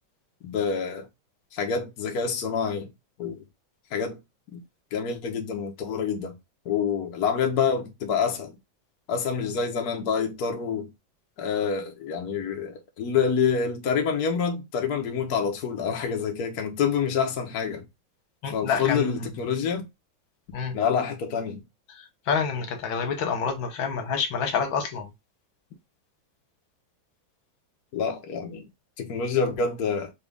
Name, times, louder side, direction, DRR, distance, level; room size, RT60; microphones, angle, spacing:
voice 1, 0.4-1.1 1.5-2.9 3.2-3.4 3.9-4.2 4.5-4.6 4.9-6.3 6.6-8.5 9.1-10.9 11.4-17.8 18.5-19.9 20.7-21.6 27.9-28.7 29.0-30.1, left 6 dB, 55° left, 1.3 m, -27 dB
voice 2, 18.4-19.1 20.5-20.8 22.0-25.1, left 6 dB, 85° left, 1.8 m, -28 dB
5.1 x 2.4 x 3.4 m
omnidirectional pair, 2.1 m